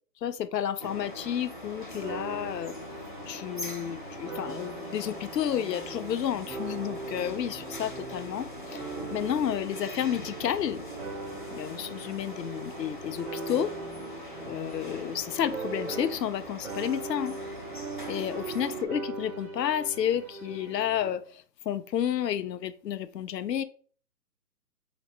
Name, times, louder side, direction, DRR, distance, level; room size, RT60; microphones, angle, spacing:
voice 1, 0.2-2.7 3.3-8.8 9.1-10.8 11.5-13.7 14.4-17.4 18.1-23.6, left 10 dB, 85° left, 0.5 m, -31 dB
sound 1, 0.8-18.9, left 1 dB, 35° left, 0.4 m, -42 dB
sound 2, 2.0-16.4 16.6-21.1, right 3 dB, 50° right, 1.6 m, -40 dB
4.1 x 2.8 x 3.3 m
hypercardioid pair, 160°, 48 cm